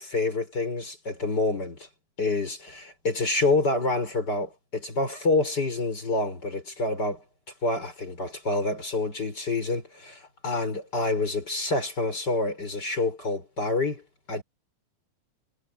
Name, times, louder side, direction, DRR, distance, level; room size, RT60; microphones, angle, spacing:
voice 1, 0.0-1.9 2.2-7.2 7.6-14.0 14.3-14.4, left 2 dB, 20° left, 4.8 m, -27 dB
omnidirectional pair, 5.5 m